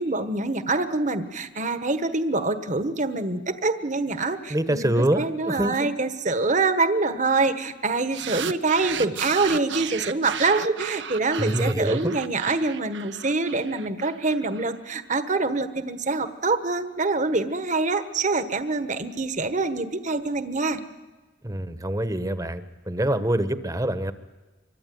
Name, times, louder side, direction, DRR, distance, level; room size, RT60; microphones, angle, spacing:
voice 1, 0.0-20.8, right 3 dB, 40° right, 10 dB, 1.4 m, -25 dB
voice 2, 4.5-5.8 11.4-12.1 21.4-24.1, right 1 dB, 20° right, 11 dB, 1.2 m, -25 dB
sound 1, 8.1-14.6, right 8 dB, 70° right, 1.0 m, -34 dB
26.0 x 24.0 x 9.4 m, 1.3 s
head